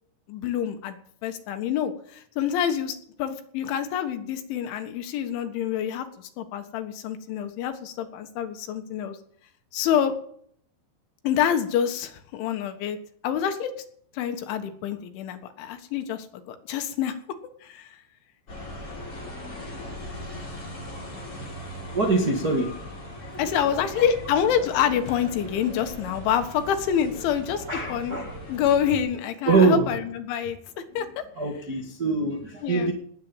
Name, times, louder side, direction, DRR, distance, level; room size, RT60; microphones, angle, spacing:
voice 1, 0.3-1.0 1.2-9.2 9.7-10.1 11.2-13.0 13.2-13.7 14.1-17.2 17.6-18.0 23.4-27.6 27.9-28.2 28.5-30.6 31.0-31.2 32.6-32.9, left 9 dB, 75° left, 7 dB, 3.8 m, -27 dB
sound 1, 18.5-29.0, left 1 dB, 25° left, 8.0 m, -39 dB
voice 2, 21.9-22.8 23.1-24.0 27.6-28.4 29.4-30.0 31.0-31.1 31.3-32.9, right 3 dB, 70° right, 0 dB, 0.9 m, -24 dB
19.0 x 9.3 x 7.4 m, 0.62 s
omnidirectional pair, 5.6 m